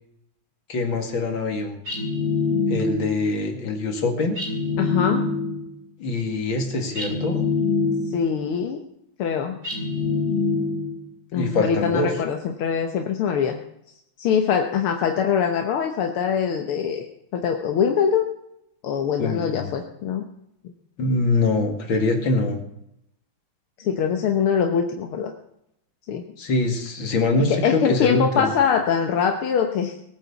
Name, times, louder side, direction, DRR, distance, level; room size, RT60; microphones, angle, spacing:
voice 1, 0.7-1.8 2.7-4.4 6.0-7.4 11.3-12.1 19.2-19.7 21.0-22.6 26.4-28.5, left 3 dB, 65° left, 4 dB, 3.0 m, -24 dB
sound 1, 1.9-3.2 4.4-5.7 7.0-8.3 9.6-11.0, left 4 dB, 45° right, 4.0 m, -25 dB
voice 2, 4.8-5.3 8.1-8.8 9.2-9.6 11.3-13.6 14.2-17.1 17.3-18.3 18.8-20.2 23.8-25.3 26.1-26.2 27.6-29.9, left 7 dB, 85° left, 4 dB, 2.1 m, -23 dB
19.5 x 9.0 x 7.1 m, 0.77 s
omnidirectional pair, 2.3 m